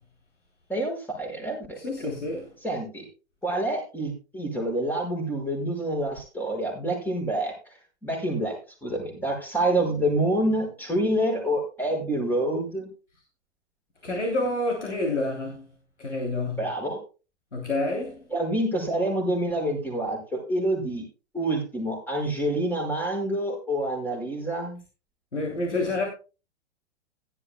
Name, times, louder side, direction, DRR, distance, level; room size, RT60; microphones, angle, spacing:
voice 1, 0.7-2.1 2.6-3.1 3.4-7.5 8.0-8.5 8.8-12.9 16.6-17.0 18.3-21.0 21.3-24.8, right 1 dB, 5° left, 5.5 m, -27 dB
voice 2, 1.8-2.5 14.0-15.6 16.0-16.6 17.5-18.2 25.3-26.1, left 2 dB, 85° left, 3.2 m, -28 dB
16.5 x 12.0 x 2.2 m
figure-of-eight pair, 105°, 35 cm